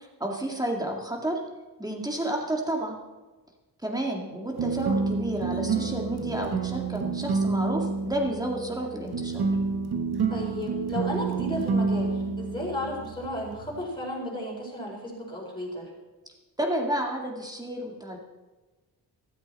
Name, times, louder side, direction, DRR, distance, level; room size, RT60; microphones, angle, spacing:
voice 1, 0.0-1.4 1.8-3.0 3.8-9.4 16.6-18.2, right 1 dB, 10° right, 1 dB, 2.2 m, -31 dB
sound 1, 4.5-13.8, right 4 dB, 70° right, 1.4 m, -29 dB
voice 2, 10.3-15.9, left 1 dB, 10° left, -3 dB, 4.7 m, -33 dB
14.5 x 14.0 x 4.3 m, 1.2 s
wide cardioid pair, 135°, 40 cm